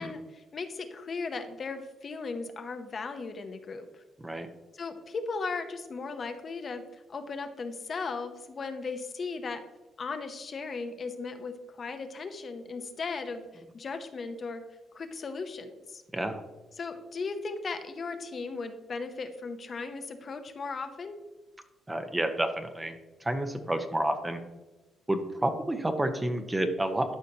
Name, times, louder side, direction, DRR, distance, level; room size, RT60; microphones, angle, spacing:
voice 1, 0.0-4.0 4.7-9.6 10.0-14.6 14.9-16.0 16.7-21.2, left 4 dB, 45° left, 7 dB, 0.8 m, -37 dB
voice 2, 21.9-24.4 25.1-27.1, right 1 dB, 15° right, 7 dB, 0.9 m, -30 dB
12.5 x 5.1 x 2.9 m, 1.2 s
cardioid pair, 90°, 0 cm